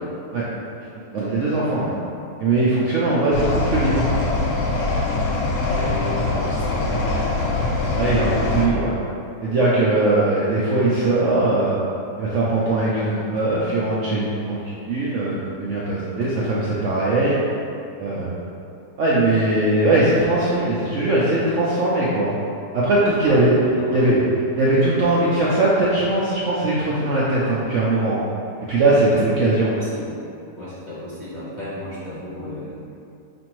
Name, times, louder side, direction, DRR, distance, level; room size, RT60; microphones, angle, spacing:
voice 1, 1.1-1.9 2.4-4.1 7.9-8.9 9.4-11.8 12.2-17.5 18.0-18.3 19.0-22.3 22.7-23.6 23.9-24.2 24.6-28.2 28.7-29.7, right 2 dB, 70° right, -7 dB, 0.7 m, -20 dB
sound 1, 3.3-8.7, left 2 dB, 75° left, 1.1 m, -23 dB
voice 2, 5.6-7.6 23.2-23.4 23.8-24.1 29.1-30.1 30.6-32.8, left 1 dB, 40° left, -11 dB, 0.7 m, -33 dB
5.1 x 2.6 x 3.0 m, 2.6 s
omnidirectional pair, 1.7 m